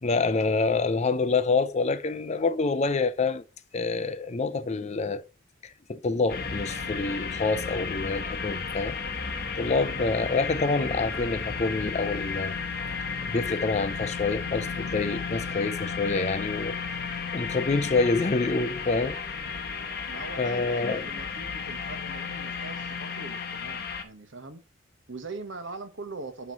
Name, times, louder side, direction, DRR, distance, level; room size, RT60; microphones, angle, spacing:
voice 1, 0.0-3.4 3.7-5.3 5.6-9.0 9.6-12.5 13.2-16.8 17.3-19.2 20.4-21.1, left 3 dB, 35° left, 0.5 m, -27 dB
sound 1, 6.3-24.0, left 5 dB, 50° left, 1.1 m, -33 dB
voice 2, 20.1-24.6 25.1-26.5, right 3 dB, 65° right, 1.1 m, -41 dB
9.3 x 3.1 x 6.1 m
head